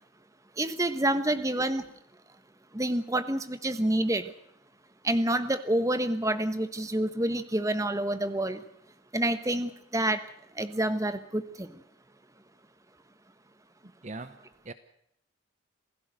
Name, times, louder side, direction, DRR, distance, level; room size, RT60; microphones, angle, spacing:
voice 1, 0.6-1.8 2.7-4.3 5.0-8.6 9.1-10.2 10.6-11.7, right 1 dB, 15° right, 11 dB, 1.1 m, -28 dB
voice 2, 14.0-14.7, right 3 dB, 35° right, 11 dB, 0.8 m, -41 dB
27.5 x 16.5 x 6.5 m, 0.74 s
head